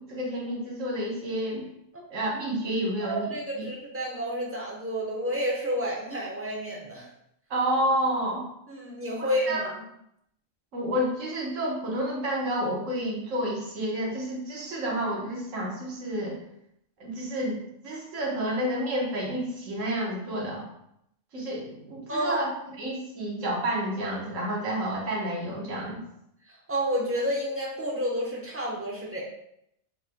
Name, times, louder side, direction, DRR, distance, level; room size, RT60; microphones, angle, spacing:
voice 1, 0.0-1.7 2.1-3.6 7.5-8.4 9.5-9.6 10.7-16.4 17.0-20.6 21.3-22.5 22.8-26.0, right 1 dB, 75° right, -3 dB, 1.4 m, -30 dB
voice 2, 3.0-7.1 8.7-9.7 22.1-22.4 26.5-29.2, equal, 10° right, -3 dB, 0.8 m, -30 dB
5.5 x 3.2 x 2.2 m, 0.76 s
omnidirectional pair, 1.3 m